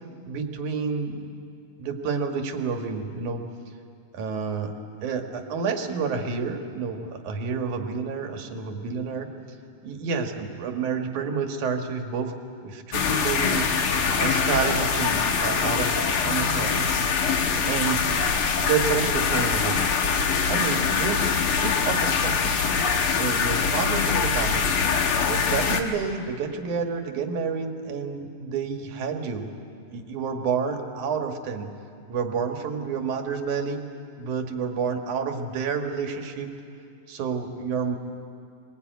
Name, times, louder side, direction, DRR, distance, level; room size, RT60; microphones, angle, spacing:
voice 1, 0.3-1.3 1.8-3.4 4.1-4.7 5.0-9.3 9.8-12.3 12.6-13.7 14.2-16.9 17.7-18.2 18.6-19.8 20.5-22.7 23.2-24.7 25.3-29.5 29.9-31.7 32.1-33.8 34.2-36.5 37.1-38.0, right 5 dB, 85° right, 4 dB, 3.0 m, -29 dB
sound 1, 12.9-25.8, left 5 dB, 55° left, 2.0 m, -23 dB
sound 2, 14.0-15.7, right 2 dB, 35° right, 2.3 m, -39 dB
23.0 x 20.5 x 9.2 m, 2.4 s
omnidirectional pair, 3.4 m